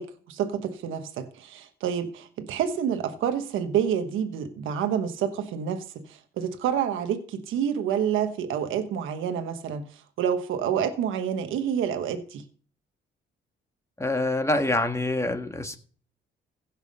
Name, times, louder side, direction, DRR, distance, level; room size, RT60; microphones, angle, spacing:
voice 1, 0.0-12.4, right 8 dB, 85° right, 1.3 m, -28 dB
voice 2, 14.0-15.8, left 2 dB, 15° left, 1.5 m, -26 dB
16.0 x 6.0 x 5.4 m
cardioid pair, 90°, 20 cm